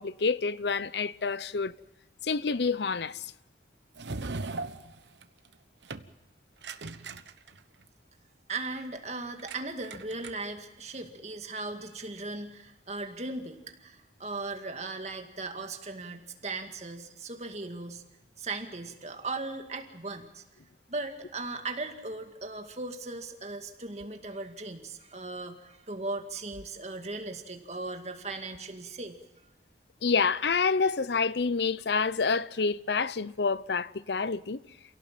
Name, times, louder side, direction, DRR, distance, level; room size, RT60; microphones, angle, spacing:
voice 1, 0.0-1.7 2.2-3.3 30.0-34.6, left 4 dB, 75° left, 0.7 m, -28 dB
sound 1, 3.9-5.5 5.8-6.1 6.6-7.8 9.4-9.6 9.8-10.6, right 3 dB, 85° right, 1.2 m, -38 dB
voice 2, 8.5-18.0 18.4-20.4 20.9-29.2, right 3 dB, 40° right, 2.2 m, -38 dB
28.0 x 17.5 x 7.6 m
head